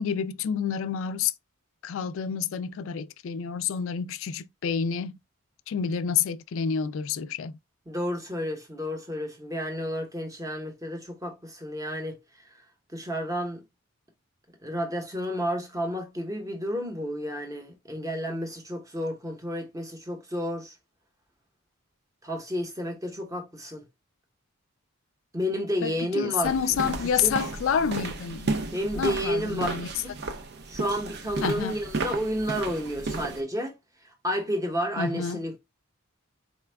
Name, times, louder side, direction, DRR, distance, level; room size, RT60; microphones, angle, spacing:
voice 1, 0.0-1.3 1.8-5.2 5.7-7.5 25.8-28.5 29.0-29.9 31.4-31.8 35.0-35.4, left 7 dB, 65° left, 0.3 m, -28 dB
voice 2, 7.9-12.2 12.9-13.6 14.6-20.7 22.2-23.8 25.3-26.8 27.2-27.3 28.7-29.7 30.0-30.2 30.7-33.7 34.2-35.6, equal, 15° right, 0.8 m, -31 dB
sound 1, 26.4-33.4, right 3 dB, 50° right, 0.5 m, -33 dB
4.2 x 2.3 x 3.3 m
head